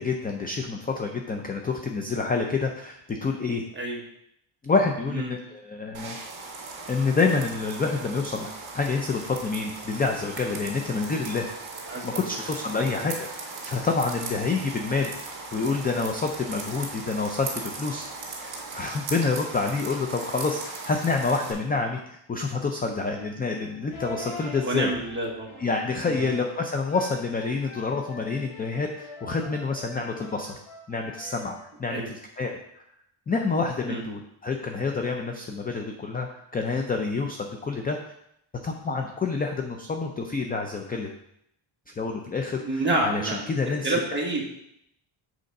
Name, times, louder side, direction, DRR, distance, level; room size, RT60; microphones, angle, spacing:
voice 1, 0.0-3.6 4.6-6.2 6.9-11.5 12.0-15.2 15.5-18.1 18.4-24.9 25.6-30.6 30.9-32.6 33.3-38.0 38.6-41.2 42.0-43.9, left 4 dB, 20° left, 3 dB, 0.3 m, -28 dB
sound 1, 5.9-21.5, right 3 dB, 70° right, 2.0 m, -38 dB
voice 2, 11.9-12.3 24.6-25.6 26.1-26.3 31.9-32.1 33.9-34.0 42.6-44.5, right 2 dB, 20° right, -2 dB, 1.3 m, -28 dB
sound 2, 22.9-32.1, left 2 dB, 70° left, 1.8 m, -44 dB
7.8 x 3.8 x 5.2 m, 0.76 s
wide cardioid pair, 180°, 49 cm